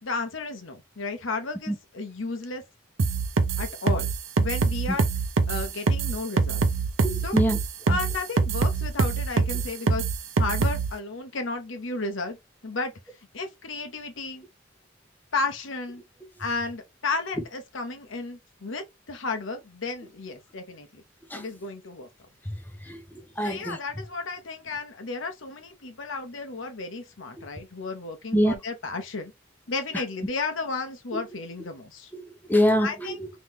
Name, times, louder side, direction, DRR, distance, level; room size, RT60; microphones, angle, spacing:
voice 1, 0.0-2.6 3.6-4.1 4.4-5.0 5.5-6.6 7.2-7.4 7.9-10.0 10.4-12.4 12.6-12.9 13.3-14.5 15.3-16.0 16.4-21.0 21.3-22.1 23.4-29.3 29.7-32.1 32.8-33.2, left 3 dB, 70° left, 1.0 m, -33 dB
sound 1, 3.0-10.9, right 4 dB, 85° right, 0.7 m, -24 dB
voice 2, 7.0-7.6 7.9-8.0 21.3-21.4 22.4-23.8 27.4-27.5 28.3-28.5 31.1-31.2 32.1-33.3, equal, 10° left, 0.8 m, -26 dB
3.7 x 3.1 x 3.0 m
head